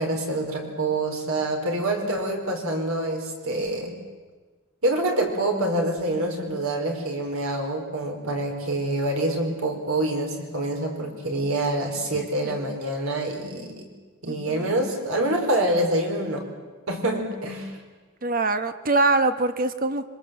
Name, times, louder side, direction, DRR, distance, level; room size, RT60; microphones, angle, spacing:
voice 1, 0.0-4.0 4.8-13.9 14.2-16.4 16.9-17.8, right 1 dB, 65° right, 3 dB, 4.8 m, -26 dB
voice 2, 12.4-12.8 14.3-14.8 18.2-20.1, right 2 dB, 40° right, 10 dB, 1.2 m, -24 dB
26.0 x 24.0 x 7.8 m, 1.4 s
head